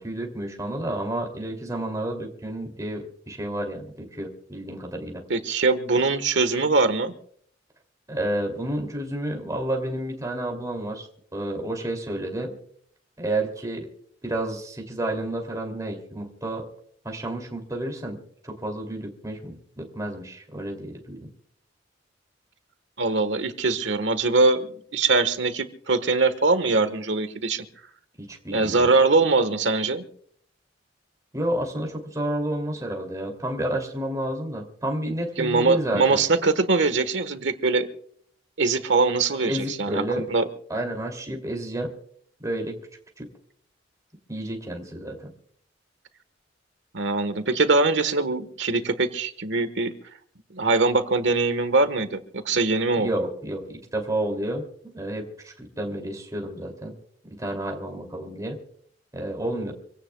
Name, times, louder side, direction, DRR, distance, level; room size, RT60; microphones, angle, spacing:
voice 1, 0.0-5.2 8.1-11.1 11.3-12.5 13.2-13.9 14.2-16.6 17.0-21.3 28.2-28.9 31.3-36.2 39.4-40.3 40.7-41.9 42.4-42.8 43.2-43.3 44.3-45.3 52.9-54.6 54.9-57.0 57.4-58.6 59.1-59.7, right 1 dB, 20° right, 1 dB, 2.8 m, -30 dB
voice 2, 5.3-7.1 23.0-27.6 28.5-30.0 35.4-37.9 38.6-40.4 46.9-49.9 50.5-53.1, right 3 dB, 75° right, 11 dB, 1.4 m, -22 dB
26.5 x 17.0 x 2.3 m, 0.62 s
head